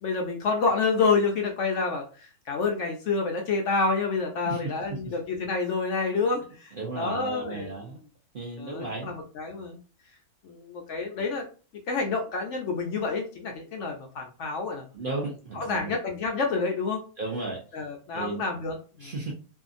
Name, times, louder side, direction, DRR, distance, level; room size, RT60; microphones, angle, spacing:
voice 1, 0.0-7.7 8.6-9.8 10.4-11.4 11.9-14.9 15.5-17.0 17.7-19.1, left 4 dB, 65° left, 2 dB, 0.8 m, -28 dB
voice 2, 4.4-5.1 6.7-8.0 8.3-9.2 14.9-15.9 17.2-17.9 18.1-18.4 19.0-19.3, right 3 dB, 55° right, -3 dB, 0.6 m, -35 dB
2.7 x 2.4 x 2.5 m, 0.37 s
omnidirectional pair, 1.5 m